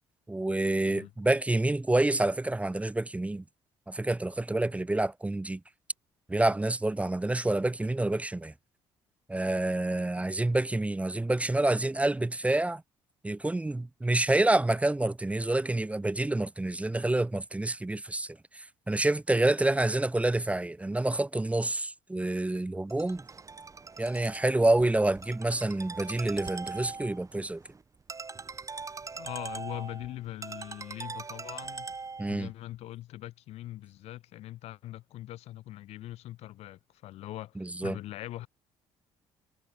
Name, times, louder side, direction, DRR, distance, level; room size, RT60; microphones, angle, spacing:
voice 1, 0.3-3.4 3.9-5.6 6.3-8.5 9.3-12.8 13.2-23.2 24.0-27.6 32.2-32.5 37.6-38.0, right 2 dB, 10° right, 0.9 m, -28 dB
Ringtone, 22.9-32.5, right 4 dB, 30° right, 4.0 m, -42 dB
voice 2, 29.2-31.9 32.3-38.5, left 14 dB, 75° left, 1.2 m, -42 dB
supercardioid pair, 75°, 11 cm